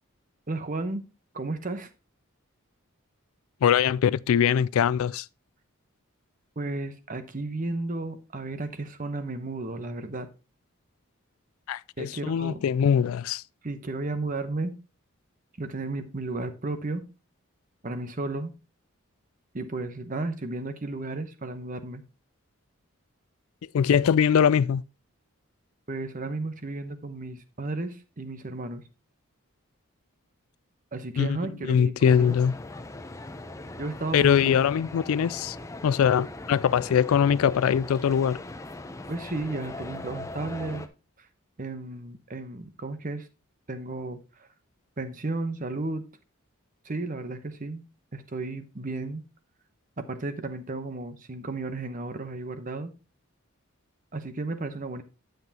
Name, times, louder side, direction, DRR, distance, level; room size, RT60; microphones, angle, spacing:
voice 1, 0.5-1.0 1.3-1.9 6.6-10.3 12.0-12.6 13.6-14.7 15.6-17.0 17.8-18.5 19.5-22.0 25.9-28.8 30.9-32.4 33.8-34.5 39.1-40.9 41.2-41.3 41.6-43.3 43.7-44.5 45.0-46.0 46.8-47.8 48.1-49.2 50.1-52.9 54.1-55.0, right 2 dB, 40° right, 0.9 m, -33 dB
voice 2, 3.6-5.3 11.7-13.4 23.7-24.8 31.2-31.4 31.7-32.5 34.1-35.6 35.8-38.4, left 8 dB, 75° left, 0.3 m, -22 dB
sound 1, 32.0-40.9, left 2 dB, 15° left, 0.6 m, -40 dB
9.3 x 7.8 x 2.8 m
head